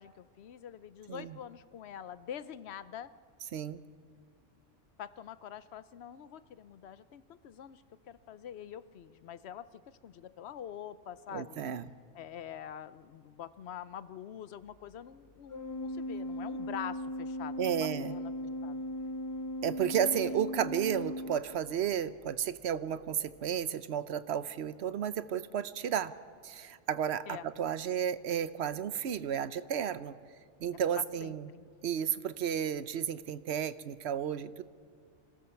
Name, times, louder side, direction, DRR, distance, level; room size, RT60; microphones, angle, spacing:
voice 1, 0.0-3.1 5.0-11.6 12.1-18.3 18.6-18.8 19.8-20.4 27.3-27.5 31.0-31.7, left 9 dB, 65° left, 15 dB, 0.9 m, -45 dB
voice 2, 11.3-11.9 17.6-18.1 19.6-26.1 26.4-30.1 30.6-31.5 31.8-34.6, right 9 dB, 65° right, 14 dB, 0.9 m, -33 dB
Organ, 15.5-22.1, equal, 25° left, 0.5 m, -38 dB
25.0 x 17.5 x 7.0 m, 2.1 s
omnidirectional pair, 1.2 m